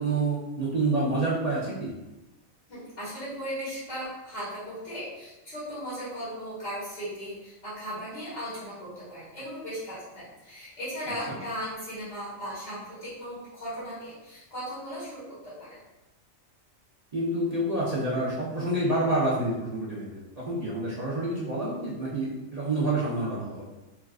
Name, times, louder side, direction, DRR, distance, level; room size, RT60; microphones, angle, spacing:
voice 1, 0.0-1.9 11.3-11.4 17.1-23.7, right 2 dB, 45° right, -8 dB, 0.5 m, -28 dB
voice 2, 2.7-15.8, equal, 60° left, -11 dB, 1.9 m, -37 dB
4.4 x 2.3 x 2.4 m, 1.0 s
omnidirectional pair, 1.4 m